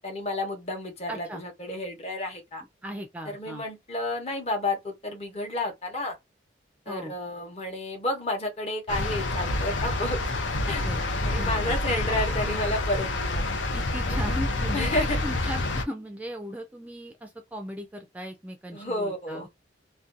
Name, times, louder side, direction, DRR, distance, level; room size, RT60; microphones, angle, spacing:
voice 1, 0.0-2.6 3.3-6.2 6.9-10.2 10.7-10.8 11.2-13.4 14.0-14.2 14.7-15.2 18.7-19.5, left 1 dB, 35° left, 0.8 m, -31 dB
voice 2, 1.1-1.4 2.8-3.6 6.9-7.1 10.7-11.0 11.4-11.8 13.7-14.9 15.2-19.5, equal, 10° right, 0.3 m, -37 dB
sound 1, 8.9-15.8, left 2 dB, 80° left, 0.6 m, -28 dB
2.5 x 2.2 x 2.5 m
head